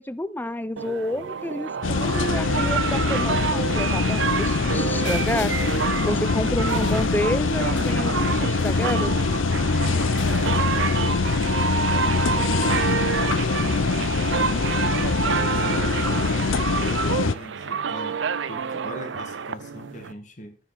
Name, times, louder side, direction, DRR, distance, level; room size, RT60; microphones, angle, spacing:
voice 1, 0.0-5.5 6.0-9.2, left 1 dB, 10° left, 0.5 m, -29 dB
sound 1, 0.8-20.1, right 6 dB, 65° right, 0.5 m, -28 dB
sound 2, 1.8-17.3, left 4 dB, 85° left, 0.7 m, -23 dB
sound 3, 5.0-9.5 10.0-11.3, left 9 dB, 65° left, 1.4 m, -44 dB
voice 2, 14.3-16.0 16.3-20.6, left 1 dB, 40° left, 1.6 m, -40 dB
13.5 x 5.7 x 5.8 m
head